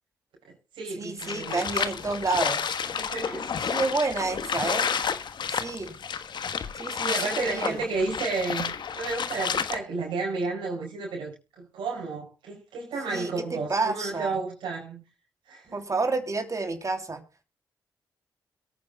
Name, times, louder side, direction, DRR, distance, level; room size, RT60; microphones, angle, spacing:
voice 1, 0.4-1.6 2.9-3.5 7.0-15.0 15.5-15.8, right 3 dB, 90° right, 5.3 m, -32 dB
voice 2, 1.0-2.8 3.6-4.9 5.5-5.9 6.7-7.8 13.1-14.4 15.7-17.2, right 3 dB, 40° right, 3.1 m, -30 dB
sound 1, 1.2-9.8, left 7 dB, 65° left, 1.3 m, -30 dB
23.0 x 9.4 x 2.3 m
supercardioid pair, 50°, 8 cm